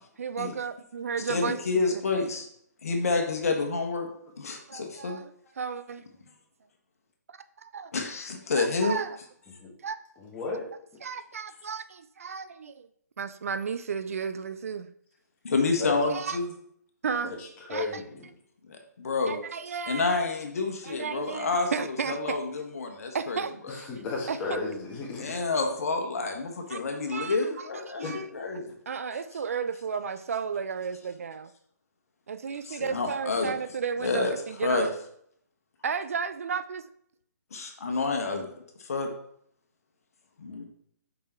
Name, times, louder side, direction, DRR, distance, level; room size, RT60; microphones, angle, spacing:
voice 1, 0.0-2.0 4.7-5.3 5.6-6.0 7.7-7.9 8.5-9.2 9.8-10.0 11.0-12.9 13.2-14.9 16.1-16.4 17.0-17.3 17.7-18.0 19.3-20.2 20.8-22.4 23.1-23.9 24.3-24.4 26.7-26.8 27.1-27.4 27.9-28.3 28.9-31.5 32.3-34.9 35.8-36.8, right 6 dB, 55° right, 12 dB, 0.5 m, -33 dB
voice 2, 1.3-2.5 2.8-4.1 4.4-5.2 7.9-9.0 15.4-16.5 18.7-19.4 19.9-23.7 25.2-28.7 32.7-33.6 34.0-34.3 34.6-34.9 37.5-38.4 38.8-39.1 40.4-40.6, left 3 dB, 55° left, 3 dB, 1.4 m, -29 dB
voice 3, 10.2-10.7 10.9-11.0 15.8-15.9 17.2-18.3 23.7-25.4 28.0-28.1, left 3 dB, 15° left, -2 dB, 1.6 m, -34 dB
5.5 x 5.4 x 4.5 m, 0.69 s
figure-of-eight pair, 140°, 10 cm